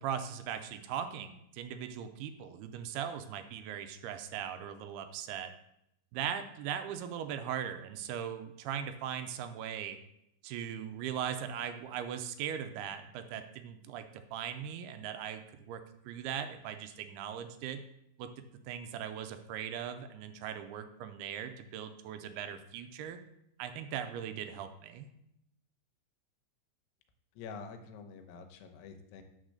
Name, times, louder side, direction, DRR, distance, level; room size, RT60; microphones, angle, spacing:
voice 1, 0.0-5.5 6.1-10.0 10.4-17.8 18.2-18.3 18.7-23.2 23.6-25.1, right 9 dB, 80° right, 8 dB, 2.6 m, -39 dB
voice 2, 27.4-29.2, left 5 dB, 90° left, 6 dB, 3.0 m, -47 dB
8.8 x 4.5 x 6.5 m, 0.79 s
omnidirectional pair, 4.7 m